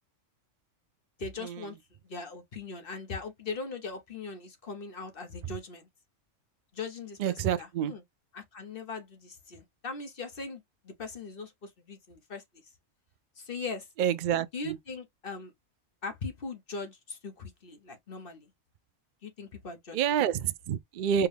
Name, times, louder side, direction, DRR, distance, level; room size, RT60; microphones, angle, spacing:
voice 1, 1.2-1.8 2.0-5.9 6.7-8.0 8.3-12.4 13.4-13.9 14.5-15.5 16.0-18.5 19.2-20.0, left 4 dB, 45° left, 1.2 m, -40 dB
voice 2, 7.2-7.9 14.0-14.8 19.9-21.3, right 9 dB, 70° right, 0.4 m, -28 dB
4.6 x 2.2 x 3.4 m
omnidirectional pair, 1.3 m